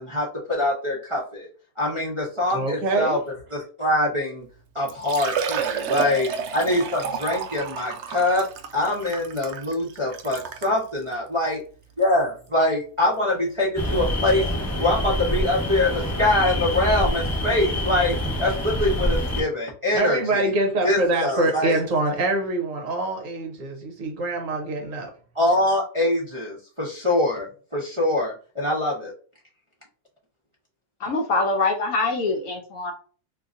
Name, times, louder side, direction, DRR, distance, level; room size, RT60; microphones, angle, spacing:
voice 1, 0.0-1.5 1.8-3.2 3.5-4.4 4.7-6.3 6.5-8.5 8.7-11.6 12.0-14.5 14.8-20.4 20.8-21.8 25.3-29.1, left 1 dB, 30° right, 0.6 m, -24 dB
voice 2, 2.5-3.2 19.9-25.1, right 2 dB, 60° right, 1.0 m, -25 dB
Liquid, 4.4-4.5 4.9-10.8 11.5-11.6 12.0-12.1 13.8-13.9 14.0-14.1, right 7 dB, 80° right, 0.6 m, -31 dB
sound 1, 13.8-19.4, left 1 dB, 10° left, 0.9 m, -26 dB
voice 3, 31.0-32.9, left 3 dB, 65° left, 0.9 m, -24 dB
3.8 x 2.8 x 2.5 m
omnidirectional pair, 1.7 m